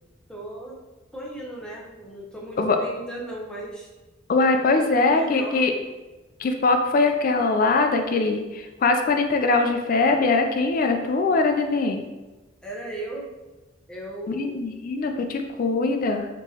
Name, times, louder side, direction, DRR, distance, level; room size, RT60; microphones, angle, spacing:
voice 1, 0.3-0.8 1.1-3.9 4.7-5.6 12.6-13.3 13.9-14.6, right 1 dB, 5° left, -4 dB, 0.7 m, -36 dB
voice 2, 4.3-5.7 6.4-12.0 14.3-16.3, left 3 dB, 45° left, 5 dB, 0.3 m, -22 dB
4.4 x 3.0 x 2.8 m, 1.1 s
head